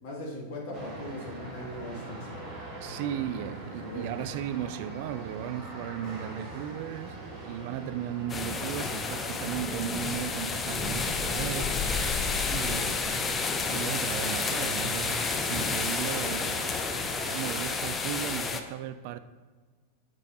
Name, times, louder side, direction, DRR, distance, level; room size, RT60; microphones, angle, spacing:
voice 1, 0.0-2.4 2.9-3.4 3.8-4.2, left 1 dB, 50° left, 1.9 m, -40 dB
sound 1, 0.7-17.7, right 2 dB, 30° right, 1.7 m, -42 dB
voice 2, 2.8-12.0 12.5-13.4 13.7-16.7 17.3-19.2, right 11 dB, 50° right, 0.3 m, -36 dB
sound 2, 8.3-18.6, left 4 dB, 20° left, 0.5 m, -30 dB
7.2 x 7.1 x 2.6 m
figure-of-eight pair, 90°, 0 cm